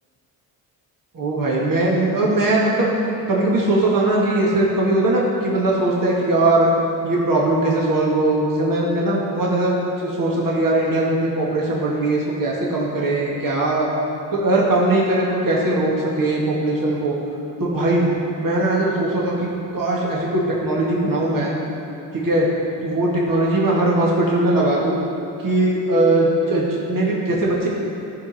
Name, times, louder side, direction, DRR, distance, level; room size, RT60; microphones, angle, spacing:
voice 1, 1.1-2.9 3.3-6.7 7.0-9.8 10.0-13.9 14.3-17.1 17.6-18.1 18.4-21.5 22.1-22.5 22.8-25.0 25.4-27.7, right 2 dB, 45° right, -4 dB, 2.0 m, -20 dB
12.5 x 5.3 x 5.7 m, 2.9 s
supercardioid pair, 60°, 44 cm